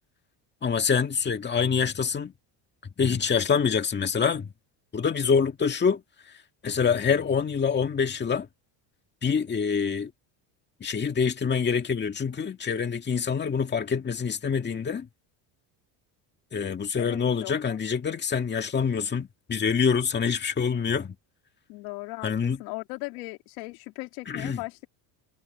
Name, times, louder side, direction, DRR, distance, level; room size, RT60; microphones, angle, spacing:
voice 1, 0.6-2.3 3.0-4.5 4.9-6.0 6.6-8.5 9.2-10.1 10.8-15.1 16.5-21.2 22.2-22.6 24.3-24.6, left 6 dB, 20° left, 2.0 m, -26 dB
voice 2, 16.9-17.8 21.7-24.9, left 24 dB, 90° left, 2.9 m, -38 dB
cardioid pair, 140°, 48 cm